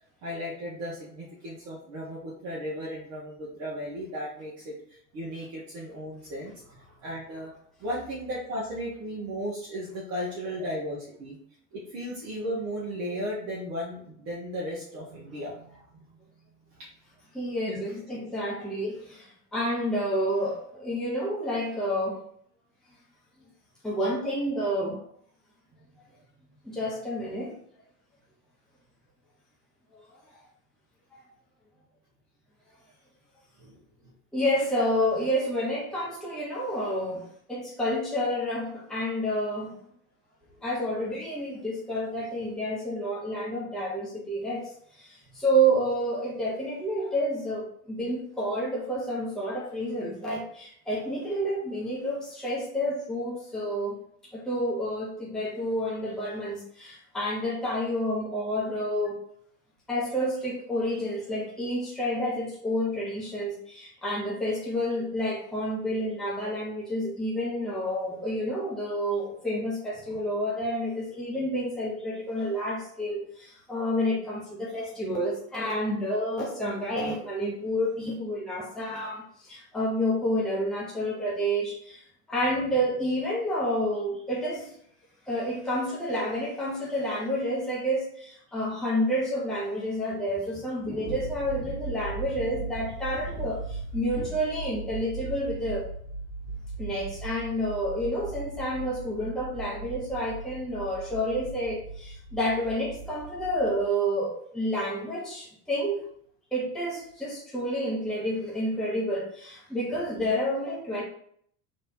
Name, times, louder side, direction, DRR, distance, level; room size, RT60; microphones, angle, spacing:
voice 1, 0.2-7.5 7.8-11.4 11.7-16.0 16.8-16.9 33.6-33.8 40.5-40.6 45.3-45.4 70.1-70.2, equal, 35° right, -6 dB, 1.3 m, -35 dB
voice 2, 17.3-22.2 23.8-25.0 26.6-27.5 29.9-30.0 31.1-31.2 34.3-39.8 40.6-54.0 54.3-59.2 59.9-84.7 85.3-95.9 96.8-106.0 106.5-111.0, equal, ahead, -5 dB, 1.0 m, -29 dB
sound 1, 91.0-103.9, right 3 dB, 65° left, 1.1 m, -38 dB
3.4 x 3.3 x 4.3 m, 0.65 s
figure-of-eight pair, 90°, 48 cm